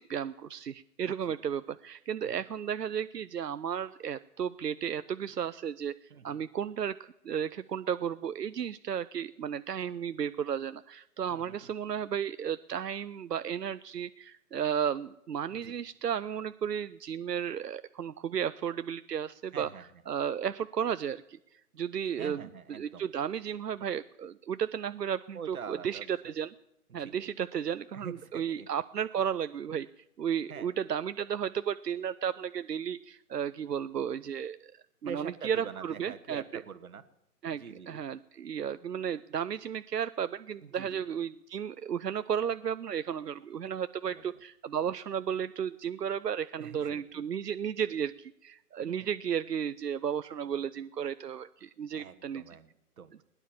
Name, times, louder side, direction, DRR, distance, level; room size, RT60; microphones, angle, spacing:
voice 1, 0.0-5.9 6.2-19.7 20.1-22.4 22.7-26.5 26.9-29.9 30.2-34.6 35.0-36.6 37.4-52.4, right 8 dB, 90° right, 13 dB, 0.6 m, -34 dB
voice 2, 6.1-6.4 11.3-11.7 15.5-15.7 19.5-19.8 22.2-23.0 25.3-26.3 26.9-27.3 27.9-28.7 30.5-30.7 35.0-37.0 37.5-38.0 40.6-41.0 44.0-44.2 46.6-47.0 48.8-49.1 51.9-53.2, right 6 dB, 60° right, 10 dB, 1.4 m, -45 dB
20.0 x 9.9 x 7.2 m, 0.84 s
figure-of-eight pair, 130°, 47 cm